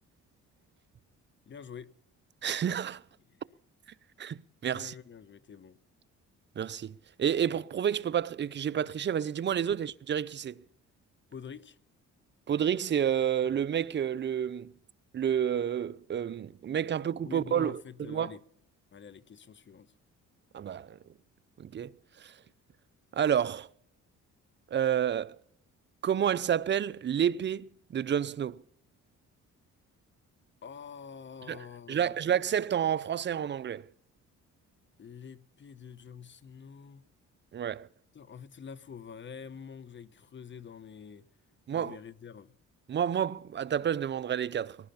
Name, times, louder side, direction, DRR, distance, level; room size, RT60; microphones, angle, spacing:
voice 1, 1.5-1.9 4.7-5.8 11.3-11.8 17.2-18.4 18.9-19.9 30.6-32.1 35.0-37.0 38.1-41.2 41.7-42.5, left 7 dB, 40° left, 0.9 m, -46 dB
voice 2, 2.4-3.0 4.2-4.4 4.6-4.9 6.6-10.6 12.5-14.7 15.1-18.3 20.5-21.0 21.6-22.4 23.1-23.7 24.7-25.4 26.0-28.6 31.5-33.8 37.5-37.9 41.7-42.0 42.9-44.8, right 9 dB, 40° right, 0.5 m, -30 dB
20.0 x 11.5 x 5.6 m
cardioid pair, 90°, 30 cm